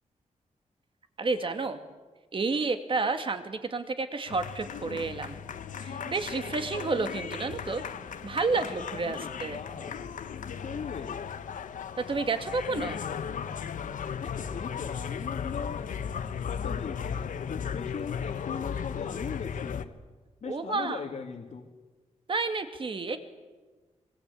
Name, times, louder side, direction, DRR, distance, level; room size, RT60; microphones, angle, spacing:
voice 1, 1.2-1.8 2.3-5.4 5.8-7.8 8.2-9.6 12.0-13.0 20.5-21.0 22.3-23.2, right 4 dB, 40° right, 8 dB, 2.3 m, -30 dB
sound 1, 4.3-19.8, left 7 dB, 85° left, 1.2 m, -36 dB
voice 2, 8.9-10.0 10.6-11.2 12.8-13.0 14.2-15.8 16.5-19.9 20.4-21.7, left 6 dB, 70° left, -1 dB, 2.6 m, -39 dB
26.0 x 23.0 x 8.6 m, 1.3 s
wide cardioid pair, 130°, 13 cm